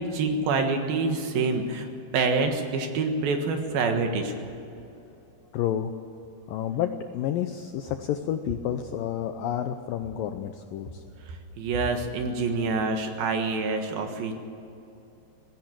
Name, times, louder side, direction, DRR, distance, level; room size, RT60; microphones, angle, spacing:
voice 1, 0.1-1.9 2.1-4.3 11.6-14.3, right 4 dB, 65° right, 5 dB, 3.1 m, -26 dB
voice 2, 5.5-6.0 6.5-11.0, left 10 dB, 80° left, 7 dB, 2.0 m, -30 dB
18.5 x 16.0 x 8.8 m, 2.8 s
omnidirectional pair, 4.9 m